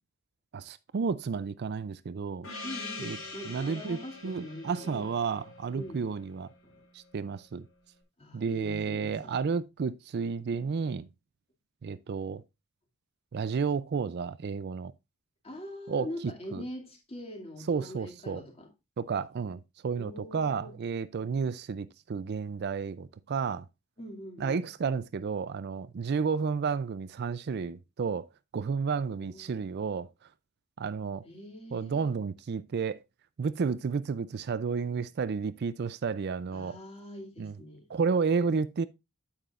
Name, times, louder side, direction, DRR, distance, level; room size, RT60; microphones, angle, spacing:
voice 1, 0.5-2.5 3.0-3.2 3.4-6.5 6.9-7.7 8.3-11.1 11.8-12.4 13.3-14.9 15.9-16.1 16.5-16.6 17.7-18.4 19.0-23.7 24.4-28.3 28.5-30.1 30.8-31.2 31.7-33.0 33.4-36.8 37.4-37.5 37.9-38.9, right 5 dB, 50° right, 0.4 m, -31 dB
Gong, 2.4-6.8, left 3 dB, 65° left, 4.0 m, -44 dB
voice 2, 2.6-5.1 5.7-6.1 6.6-6.8 8.2-9.4 15.4-18.7 19.9-20.7 24.0-24.7 29.1-29.6 31.2-32.1 36.5-38.0, left 1 dB, 25° left, 2.4 m, -43 dB
9.0 x 8.8 x 2.4 m
head